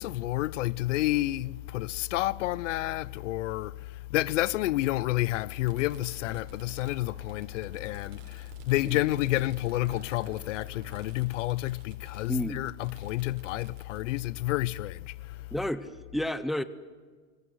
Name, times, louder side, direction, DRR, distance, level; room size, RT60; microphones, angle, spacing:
voice 1, 0.0-15.5, left 17 dB, 75° left, 0.8 m, -30 dB
Fireworks, 1.0-1.1 2.2-2.3 3.6-3.7 5.3-14.1, right 8 dB, 85° right, 5.3 m, -54 dB
sound 1, 4.8-11.2, right 5 dB, 25° right, 4.8 m, -56 dB
voice 2, 12.3-12.6 15.5-16.6, left 1 dB, ahead, 0.7 m, -31 dB
25.0 x 24.0 x 9.5 m
supercardioid pair, 150°, 37 cm